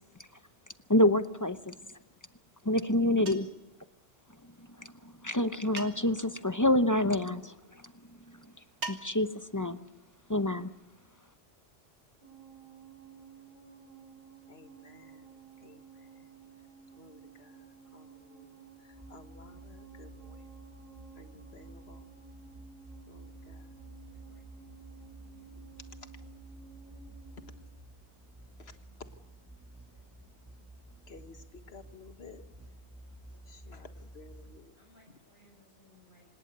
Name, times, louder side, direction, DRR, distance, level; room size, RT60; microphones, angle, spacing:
voice 1, 0.9-1.7 2.6-3.5 4.8-4.9 5.2-7.5 8.9-9.8 10.3-10.7, left 1 dB, 20° left, 11 dB, 0.7 m, -27 dB
sound 1, 3.3-3.7 5.8-6.3 8.8-9.4, right 3 dB, 80° right, 2.1 m, -41 dB
sound 2, 12.2-27.6, right 7 dB, 45° right, 6.1 m, -54 dB
voice 2, 14.5-16.3 17.0-20.6 21.2-22.1 23.1-23.7 28.6-29.1 31.1-32.4 33.3-34.8 35.1-35.2, left 4 dB, 65° left, 8 dB, 1.8 m, -55 dB
sound 3, 18.9-34.6, right 1 dB, 15° right, 1.5 m, -52 dB
voice 3, 24.1-25.6 29.9-30.0 33.5-33.9 34.4-36.3, equal, 50° left, 0 dB, 5.3 m, -65 dB
26.0 x 20.0 x 6.7 m, 0.85 s
omnidirectional pair, 1.2 m